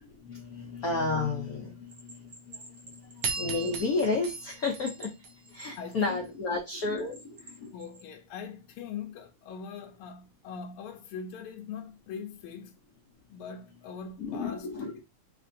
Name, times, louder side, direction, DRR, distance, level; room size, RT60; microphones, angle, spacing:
voice 1, 0.3-1.7 3.4-5.1 5.6-7.2 14.2-14.9, left 3 dB, 65° left, 0.9 m, -30 dB
Bell, 1.9-4.3 4.6-6.2 6.7-8.1, right 2 dB, 45° right, 1.5 m, -49 dB
sound 1, 3.2-5.8, right 5 dB, 80° right, 0.8 m, -36 dB
voice 2, 5.7-6.3 7.7-12.8 13.3-14.7, left 6 dB, 80° left, 1.4 m, -41 dB
3.4 x 3.0 x 2.5 m
omnidirectional pair, 2.4 m